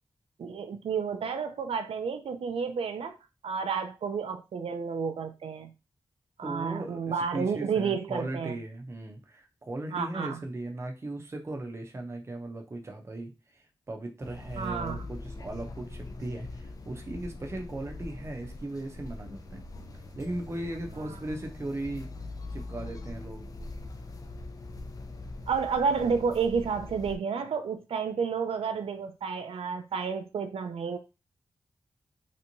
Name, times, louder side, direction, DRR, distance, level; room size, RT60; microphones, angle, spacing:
voice 1, 0.4-3.2 3.4-5.7 6.4-8.5 9.9-10.4 14.6-15.0 25.5-31.0, right 6 dB, 85° right, 0.4 m, -31 dB
voice 2, 6.4-19.6 20.1-22.1 22.5-23.4, right 2 dB, 30° right, 0.6 m, -38 dB
sound 1, 14.2-27.2, left 2 dB, 40° left, 0.5 m, -42 dB
3.3 x 2.9 x 2.6 m
wide cardioid pair, 150°, 10 cm